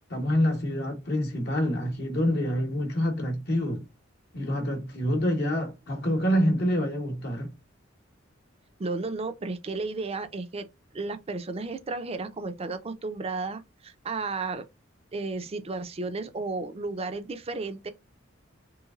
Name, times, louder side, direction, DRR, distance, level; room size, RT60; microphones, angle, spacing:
voice 1, 0.1-3.9 4.3-7.5, equal, 60° left, 0.9 m, -26 dB
voice 2, 8.8-10.6 10.9-14.6 15.1-17.9, right 3 dB, 30° right, 0.5 m, -33 dB
3.1 x 3.1 x 2.3 m
head